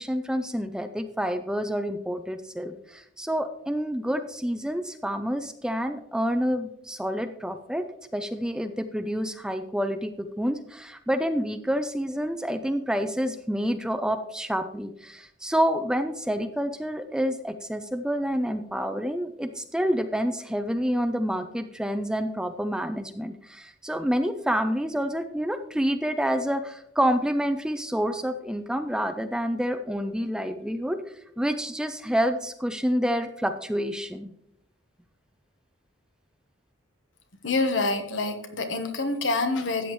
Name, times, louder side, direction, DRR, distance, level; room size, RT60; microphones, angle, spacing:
voice 1, 0.0-7.8 8.1-31.0 31.4-34.3, equal, 5° right, 8 dB, 0.4 m, -28 dB
voice 2, 37.4-39.9, left 3 dB, 70° left, 7 dB, 1.2 m, -26 dB
13.0 x 8.6 x 3.1 m, 0.77 s
head